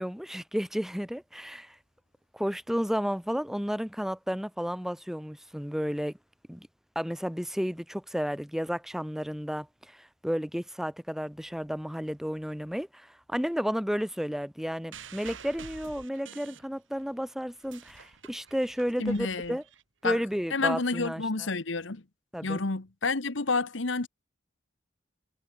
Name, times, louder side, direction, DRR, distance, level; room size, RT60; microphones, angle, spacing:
voice 1, 0.0-1.8 2.3-6.1 6.5-6.7 6.9-19.6 20.0-21.3 22.3-22.6, equal, ahead, 1.3 m, -32 dB
sound 1, 14.9-17.1 17.5-20.1 21.0-21.1, right 6 dB, 75° right, 2.7 m, -48 dB
voice 2, 19.0-19.6 20.0-20.2 20.5-22.0 22.4-24.1, left 3 dB, 70° left, 1.4 m, -29 dB
head